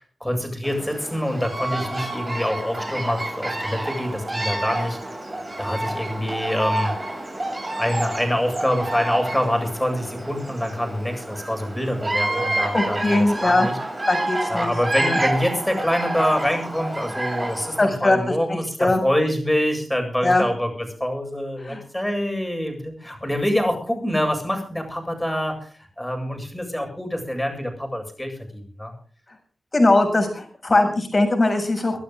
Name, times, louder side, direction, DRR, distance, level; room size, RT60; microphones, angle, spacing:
voice 1, 0.0-5.0 5.6-6.9 7.8-13.8 14.5-20.7 21.0-25.7 26.0-28.9, equal, 10° left, 4 dB, 7.7 m, -25 dB
Bird vocalization bird call bird song, 0.6-17.9, right 1 dB, 30° right, 7.3 m, -29 dB
voice 2, 12.7-13.7 14.1-14.7 15.0-15.2 17.8-19.0 20.2-20.4 21.6-21.8 29.7-32.0, left 2 dB, 40° left, 4 dB, 7.1 m, -20 dB
24.5 x 12.0 x 3.8 m, 0.43 s
cardioid pair, 50°, 0 cm